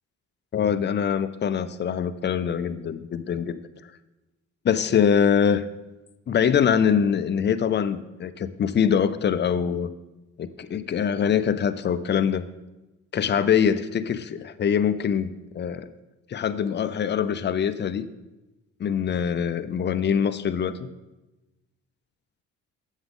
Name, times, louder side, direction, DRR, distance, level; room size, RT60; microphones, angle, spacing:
voice 1, 0.5-3.6 4.6-5.6 6.3-9.9 10.4-12.5 13.1-15.9 16.3-18.0 18.8-20.8, left 7 dB, 35° left, 12 dB, 0.5 m, -23 dB
7.4 x 7.2 x 3.7 m, 1.0 s
cardioid pair, 90°, 30 cm